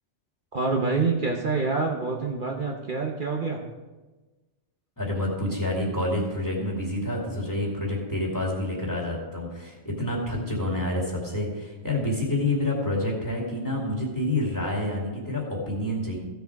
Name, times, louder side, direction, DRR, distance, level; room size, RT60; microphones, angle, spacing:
voice 1, 0.5-3.6, right 4 dB, 45° right, 0 dB, 1.1 m, -26 dB
voice 2, 5.0-16.2, left 1 dB, 15° left, -2 dB, 2.4 m, -28 dB
15.0 x 6.9 x 4.7 m, 1.2 s
omnidirectional pair, 1.2 m